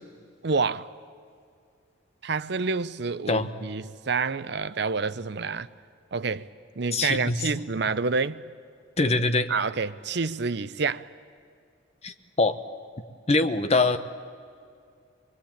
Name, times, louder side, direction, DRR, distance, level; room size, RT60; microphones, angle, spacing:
voice 1, 0.4-0.9 2.2-5.7 6.1-6.5 6.8-8.4 9.5-11.1, right 4 dB, 60° right, 0.7 m, -28 dB
voice 2, 6.9-7.4 9.0-9.5 12.0-12.6 13.3-14.0, left 3 dB, 35° left, 1.0 m, -23 dB
24.0 x 21.5 x 8.8 m
head